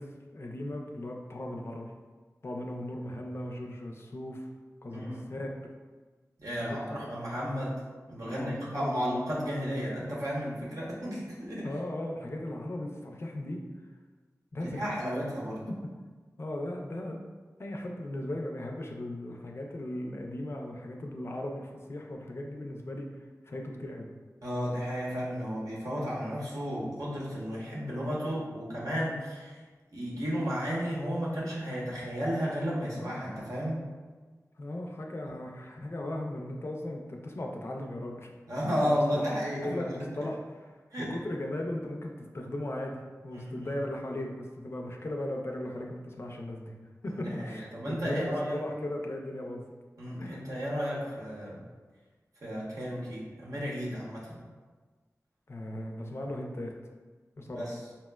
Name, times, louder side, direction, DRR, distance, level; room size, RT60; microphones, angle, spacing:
voice 1, 0.0-1.9 2.4-4.5 4.8-5.5 6.6-7.1 8.2-9.3 11.6-13.6 14.5-14.9 15.7-15.9 16.4-17.2 17.6-23.1 23.5-24.1 33.0-33.2 34.6-38.3 38.8-39.3 39.5-40.7 41.0-46.8 47.0-49.7 50.2-50.5 55.5-56.7 57.4-57.7, left 1 dB, 45° left, 1 dB, 0.4 m, -37 dB
voice 2, 4.9-5.2 6.4-7.8 8.1-11.7 14.6-15.6 24.4-29.6 29.9-33.8 35.2-35.4 38.5-40.1 40.9-41.2 43.3-43.7 47.1-48.6 50.0-51.6 52.4-54.4 57.5-57.8, equal, 70° right, -6 dB, 0.8 m, -33 dB
4.1 x 2.1 x 2.2 m, 1.4 s
wide cardioid pair, 75°, 6 cm